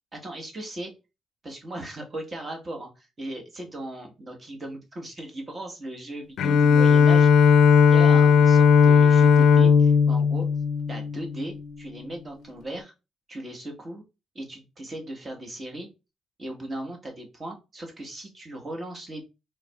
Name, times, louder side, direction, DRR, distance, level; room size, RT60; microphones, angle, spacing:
voice 1, 0.2-0.9 1.4-10.5 10.9-12.9 13.3-14.0 14.3-15.9 16.4-19.2, right 1 dB, 30° right, 1 dB, 1.3 m, -37 dB
Bowed string instrument, 6.4-11.6, left 6 dB, 75° left, 0.4 m, -17 dB
4.5 x 3.3 x 2.3 m, 0.28 s
cardioid pair, 90°, 0 cm